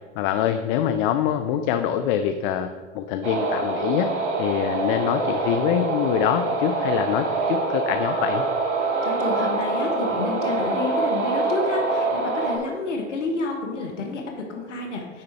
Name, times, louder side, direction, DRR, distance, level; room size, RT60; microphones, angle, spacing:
voice 1, 0.2-2.7 2.9-4.1 4.4-8.4, left 10 dB, 45° left, 8 dB, 0.5 m, -24 dB
sound 1, 3.2-12.6, right 3 dB, 65° right, 1.6 m, -25 dB
voice 2, 9.0-15.2, left 3 dB, 80° left, 1 dB, 1.1 m, -30 dB
9.8 x 3.8 x 4.3 m, 1.5 s
hypercardioid pair, 90°, 36 cm